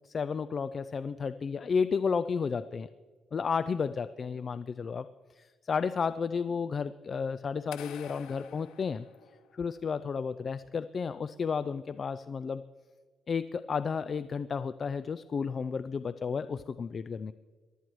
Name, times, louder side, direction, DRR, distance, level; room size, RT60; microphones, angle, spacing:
voice 1, 0.0-2.9 3.3-5.1 5.4-9.1 9.5-12.6 13.3-17.3, left 5 dB, 45° left, 13 dB, 0.4 m, -32 dB
sound 1, 7.7-9.8, left 9 dB, 85° left, 0.7 m, -49 dB
23.0 x 13.0 x 3.1 m, 1.5 s
cardioid pair, 90°, 0 cm